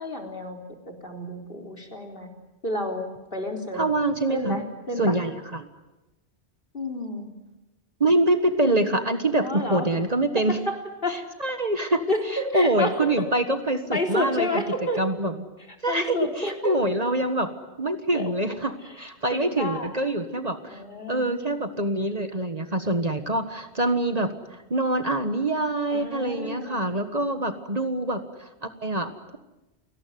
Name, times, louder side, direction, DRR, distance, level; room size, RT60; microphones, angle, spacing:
voice 1, 0.0-2.3 2.6-3.9 4.3-5.2 6.7-7.3 9.4-9.9 10.5-11.2 12.1-13.3 13.9-15.0 15.9-16.8 18.1-18.3 18.8-19.0 19.3-19.9 20.7-21.3 25.9-26.8, left 1 dB, 55° left, 2 dB, 4.1 m, -30 dB
voice 2, 3.7-4.6 5.0-5.7 8.0-10.6 11.1-12.1 12.5-14.6 15.0-15.3 15.8-17.5 17.8-20.8 21.1-29.4, right 1 dB, 35° right, 8 dB, 1.6 m, -25 dB
29.5 x 19.0 x 9.4 m, 1.0 s
omnidirectional pair, 1.1 m